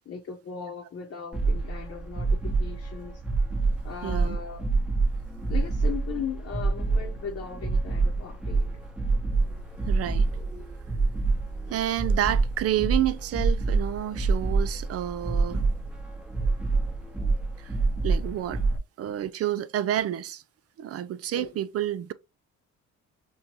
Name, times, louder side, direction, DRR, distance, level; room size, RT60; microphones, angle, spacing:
voice 1, 0.0-3.2 3.8-4.7 5.5-8.7 21.3-21.6, left 7 dB, 50° left, 0.8 m, -38 dB
sound 1, 1.3-18.8, right 3 dB, 5° right, 1.0 m, -27 dB
voice 2, 4.0-4.4 9.9-10.3 11.7-15.6 17.6-17.7 18.0-18.6 19.0-20.4 20.8-22.1, right 12 dB, 50° right, 0.5 m, -29 dB
5.3 x 2.3 x 2.9 m
cardioid pair, 90°, 30 cm